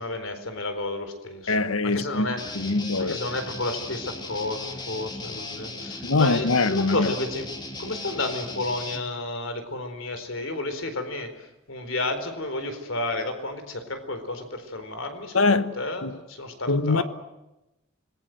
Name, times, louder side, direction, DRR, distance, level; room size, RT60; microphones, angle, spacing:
voice 1, 0.0-1.6 1.8-2.4 3.0-7.5 7.8-11.3 11.7-17.0, left 2 dB, 70° left, 4.2 m, -31 dB
voice 2, 1.5-2.3 2.5-3.2 6.0-7.1 15.3-15.8 16.0-16.2 16.7-17.0, left 3 dB, 85° left, 1.4 m, -23 dB
Guitar, 2.4-9.1, left 2 dB, 20° left, 2.7 m, -37 dB
26.5 x 21.0 x 7.9 m
head